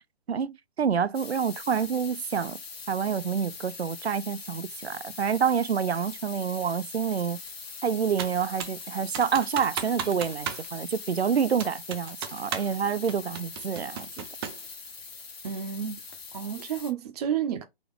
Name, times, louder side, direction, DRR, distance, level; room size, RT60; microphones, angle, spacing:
voice 1, 0.3-2.6 2.9-7.4 7.8-14.2, right 7 dB, 90° right, 0.6 m, -28 dB
sound 1, 1.1-16.9, left 5 dB, 75° left, 1.3 m, -42 dB
Computer keyboard, 8.2-8.8 9.1-10.7 10.9-11.0 11.6-12.8 13.1-14.7, right 9 dB, 25° right, 0.6 m, -35 dB
voice 2, 15.4-16.0 16.3-17.6, right 8 dB, 40° right, 1.0 m, -31 dB
3.9 x 3.4 x 3.3 m
figure-of-eight pair, 140°, 31 cm